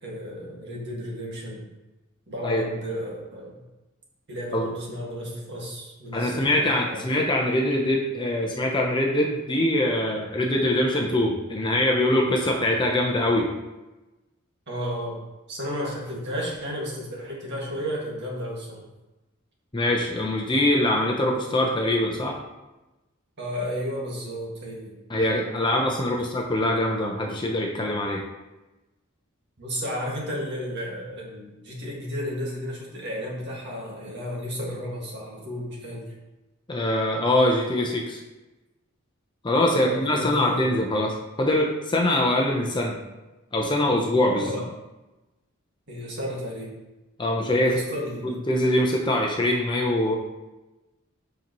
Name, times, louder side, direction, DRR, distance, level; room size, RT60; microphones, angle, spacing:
voice 1, 0.0-1.7 2.3-3.6 4.3-7.2 10.5-10.6 14.7-15.2 15.5-18.8 23.4-24.9 29.6-36.1 39.7-40.7 44.4-44.7 45.9-46.7 47.6-48.5, equal, 55° right, -3 dB, 1.9 m, -33 dB
voice 2, 6.1-13.5 19.7-22.4 25.1-28.2 36.7-38.2 39.4-43.0 43.5-44.5 47.2-47.8 48.5-50.2, left 1 dB, 20° left, 0 dB, 0.7 m, -23 dB
7.8 x 5.4 x 3.0 m, 1.1 s
head